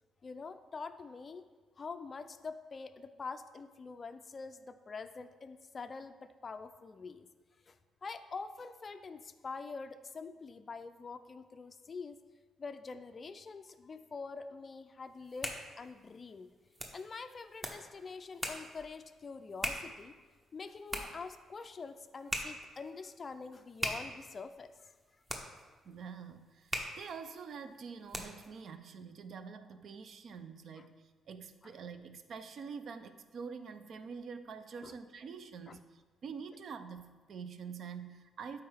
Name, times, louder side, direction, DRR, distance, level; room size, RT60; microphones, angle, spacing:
voice 1, 0.2-1.4 1.8-7.3 7.7-7.8 8.0-12.2 12.6-16.5 16.9-20.1 20.5-24.9 30.8-30.9 31.6-31.8 34.8-34.9 35.7-35.8, left 4 dB, 30° left, 9 dB, 0.4 m, -45 dB
sound 1, 15.1-28.6, equal, 10° right, 0.8 m, -43 dB
voice 2, 25.8-30.9 31.3-38.6, right 6 dB, 50° right, 10 dB, 0.5 m, -46 dB
12.0 x 4.7 x 3.4 m, 1.3 s
cardioid pair, 150°, 0 cm